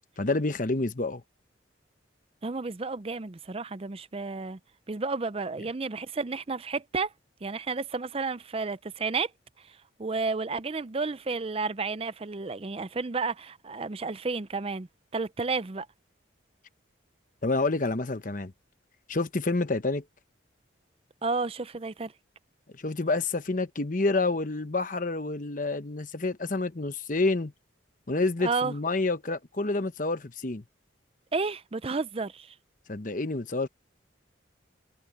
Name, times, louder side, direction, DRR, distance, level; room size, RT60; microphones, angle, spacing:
voice 1, 0.2-1.2 17.4-18.5 19.1-20.0 22.8-27.5 28.1-30.6 32.9-33.7, left 3 dB, 45° left, 1.0 m, -28 dB
voice 2, 2.4-4.6 4.9-7.1 7.4-9.3 10.0-14.9 15.1-15.9 21.2-22.1 28.4-28.7 31.3-32.5, right 4 dB, 30° right, 0.5 m, -31 dB
head